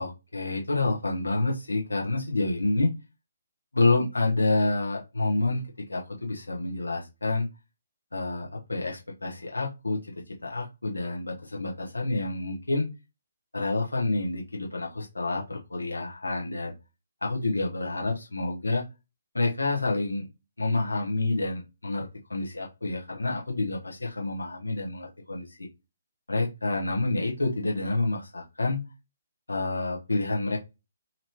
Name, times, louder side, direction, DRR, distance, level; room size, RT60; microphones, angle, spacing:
voice 1, 0.0-2.9 3.7-5.6 5.9-7.5 8.1-10.0 10.4-12.9 13.5-16.7 17.2-18.8 19.3-20.3 20.6-25.7 26.3-28.8 29.5-30.6, left 2 dB, 80° left, -1 dB, 1.0 m, -28 dB
2.9 x 2.9 x 2.9 m, 0.25 s
figure-of-eight pair, 135°, 0 cm